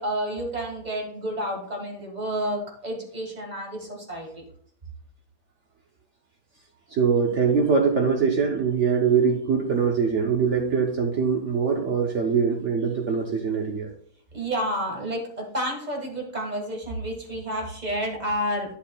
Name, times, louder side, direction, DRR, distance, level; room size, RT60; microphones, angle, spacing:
voice 1, 0.0-4.4 14.3-18.8, equal, 25° right, 0 dB, 1.5 m, -30 dB
voice 2, 6.9-13.9, right 6 dB, 60° right, 2 dB, 0.7 m, -23 dB
11.0 x 7.1 x 2.3 m, 0.62 s
omnidirectional pair, 2.2 m